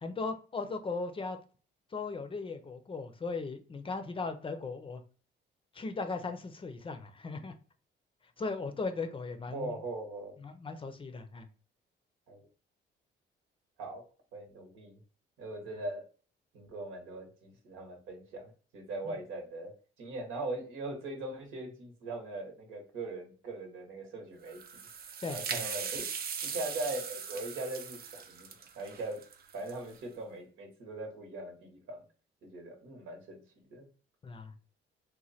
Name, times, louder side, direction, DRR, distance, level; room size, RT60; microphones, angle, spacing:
voice 1, 0.0-1.4 1.9-5.0 5.7-7.5 8.4-9.8 10.4-11.5 19.1-19.2 25.2-25.6 34.2-34.5, left 4 dB, 25° left, 8 dB, 0.5 m, -38 dB
voice 2, 9.5-10.3 12.3-12.5 13.8-14.0 14.3-15.0 15.4-16.0 16.5-24.6 25.3-26.1 26.4-28.5 28.7-29.2 29.5-32.0 32.4-33.4 33.7-33.9, right 2 dB, 90° right, 2 dB, 1.1 m, -40 dB
sound 1, 24.5-30.0, right 7 dB, 50° right, 0.5 m, -39 dB
3.1 x 2.2 x 4.0 m, 0.38 s
cardioid pair, 90°, 20 cm